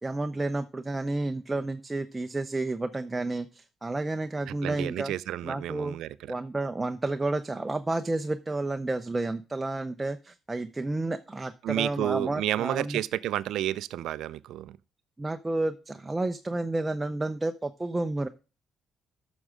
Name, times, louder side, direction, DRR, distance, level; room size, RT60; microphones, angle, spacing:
voice 1, 0.0-5.1 5.4-5.9 6.3-13.0 15.2-18.3, right 2 dB, 20° right, 0.6 m, -31 dB
voice 2, 4.5-6.3 11.6-14.8, right 13 dB, 85° right, 0.4 m, -31 dB
11.5 x 6.2 x 3.6 m
cardioid pair, 90°, 0 cm